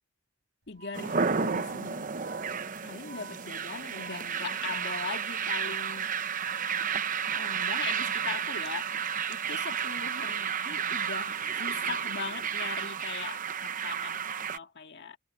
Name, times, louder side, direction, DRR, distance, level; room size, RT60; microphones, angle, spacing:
voice 1, 0.7-2.1 2.8-6.2 7.3-8.9 9.3-15.2, left 5 dB, 55° left, 1.9 m, -40 dB
Organ, 0.7-9.8, right 4 dB, 60° right, 5.2 m, -49 dB
sound 1, 0.9-14.6, right 7 dB, 40° right, 0.8 m, -32 dB
head